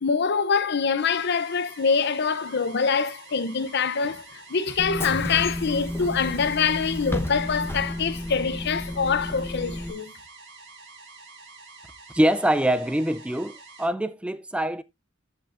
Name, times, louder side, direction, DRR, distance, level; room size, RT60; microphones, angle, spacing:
voice 1, 0.0-10.1, left 5 dB, 60° left, 0.7 m, -25 dB
sound 1, 1.0-13.9, right 4 dB, 60° right, 3.9 m, -47 dB
Bus / Engine, 4.8-9.9, left 1 dB, 10° left, 1.0 m, -32 dB
voice 2, 12.1-14.8, right 1 dB, 5° right, 0.4 m, -24 dB
14.0 x 5.7 x 2.5 m
head